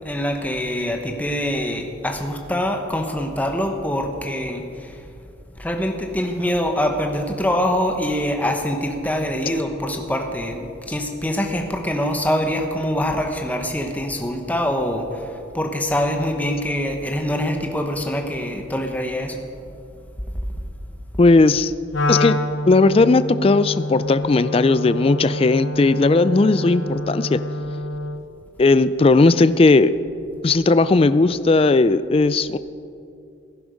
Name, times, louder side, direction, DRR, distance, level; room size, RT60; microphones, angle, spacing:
voice 1, 0.0-5.0 5.6-19.4, equal, 10° left, 3 dB, 1.1 m, -24 dB
voice 2, 21.2-21.7 22.1-22.4 22.7-27.4 28.6-29.9 30.4-32.6, left 3 dB, 30° left, 14 dB, 0.3 m, -16 dB
Wind instrument woodwind instrument, 21.9-28.3, left 2 dB, 75° left, 0.8 m, -27 dB
16.5 x 11.0 x 5.2 m, 2.5 s
head